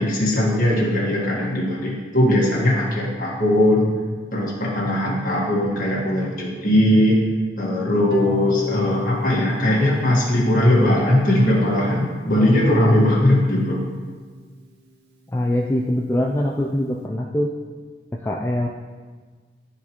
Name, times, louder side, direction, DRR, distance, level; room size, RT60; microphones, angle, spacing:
voice 1, 0.0-3.9 4.3-7.2 7.6-13.8, left 1 dB, 50° left, -4 dB, 1.6 m, -19 dB
Harp, 8.1-14.2, left 4 dB, 70° right, 0.8 m, -31 dB
voice 2, 15.3-17.5 18.1-18.7, left 1 dB, 15° left, -2 dB, 0.3 m, -23 dB
11.5 x 4.1 x 2.9 m, 1.5 s
head